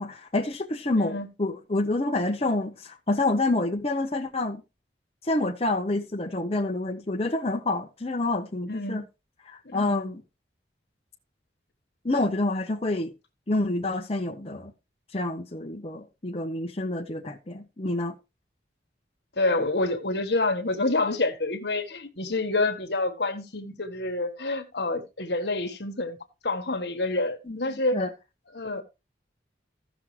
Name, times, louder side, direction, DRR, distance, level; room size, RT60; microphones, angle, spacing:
voice 1, 0.0-4.6 5.2-9.0 9.5-10.2 12.0-13.1 13.5-14.7 15.1-18.1 27.5-27.6 27.9-28.1, left 2 dB, 35° left, 0.9 m, -28 dB
voice 2, 8.7-9.0 9.6-10.1 19.4-26.2 26.4-28.0 28.5-28.8, left 2 dB, 70° left, 1.5 m, -28 dB
15.0 x 6.1 x 3.3 m
head